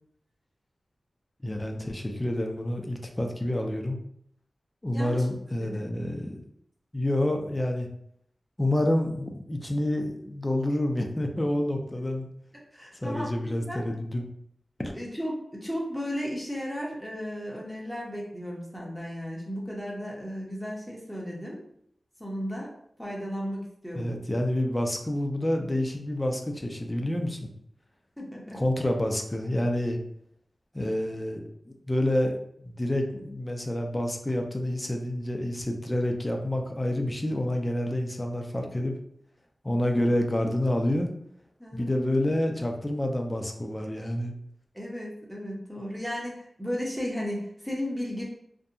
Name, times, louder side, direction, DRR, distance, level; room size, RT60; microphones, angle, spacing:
voice 1, 1.4-4.0 4.8-6.4 6.9-7.9 8.6-12.3 13.0-14.3 14.8-14.9 23.9-27.5 28.5-30.0 30.7-31.4 31.7-32.3 32.6-38.9 39.6-41.1 41.7-44.3, left 1 dB, 20° left, 3 dB, 0.4 m, -28 dB
voice 2, 4.9-5.2 5.6-5.8 12.7-13.8 14.9-21.6 22.2-22.7 23.0-24.1 28.2-28.6 39.9-40.0 41.6-41.9 44.7-48.2, equal, ahead, -3 dB, 0.8 m, -35 dB
2.7 x 2.2 x 2.5 m, 0.69 s
wide cardioid pair, 75°, 0 cm